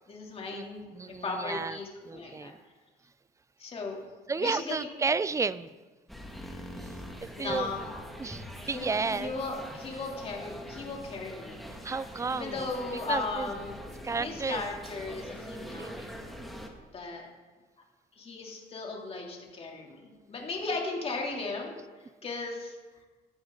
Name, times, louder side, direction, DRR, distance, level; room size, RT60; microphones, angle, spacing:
voice 1, 0.1-2.5 3.6-4.0 4.4-4.9 6.5-6.6 7.3-7.9 8.7-11.6 12.3-13.8 14.2-15.9 16.9-17.3 18.2-21.7 22.2-22.8, left 3 dB, 35° left, -1 dB, 3.2 m, -36 dB
voice 2, 0.9-1.8 2.0-2.6 4.3-5.7 6.8-6.9 7.2-7.7 8.2-9.3 11.8-12.7 13.1-13.5 14.0-14.6 15.8-16.2, right 4 dB, 20° right, 16 dB, 0.5 m, -32 dB
sound 1, 6.1-16.7, equal, ahead, 2.0 m, -43 dB
16.5 x 12.0 x 4.0 m, 1.3 s
cardioid pair, 110°, 17 cm